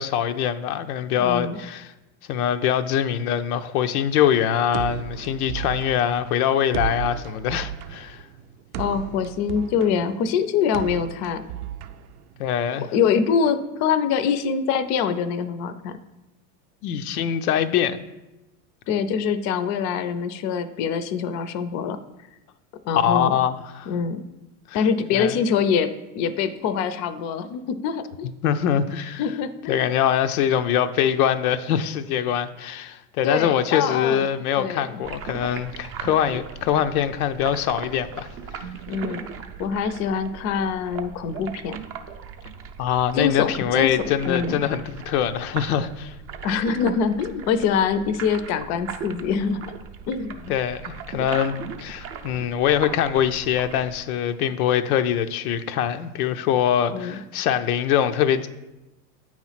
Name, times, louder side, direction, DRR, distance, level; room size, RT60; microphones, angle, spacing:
voice 1, 0.0-1.9 2.3-8.2 12.4-12.9 16.8-18.0 22.9-23.9 24.7-24.8 25.1-25.4 28.4-29.2 29.7-38.3 42.8-46.1 50.5-58.5, left 9 dB, 90° left, 0.6 m, -23 dB
voice 2, 1.2-1.6 8.8-11.4 12.9-16.0 18.9-22.0 22.9-23.3 23.9-24.2 24.7-28.3 29.2-29.9 33.2-34.2 34.6-35.0 38.9-39.3 39.6-41.8 43.1-44.6 46.4-49.6 50.1-50.5 56.9-57.2, left 6 dB, 40° left, 0.5 m, -24 dB
sound 1, 4.7-12.7, right 10 dB, 90° right, 0.6 m, -34 dB
sound 2, 35.0-54.0, right 6 dB, 35° right, 0.5 m, -38 dB
8.5 x 3.1 x 5.6 m
supercardioid pair, 125°, 42 cm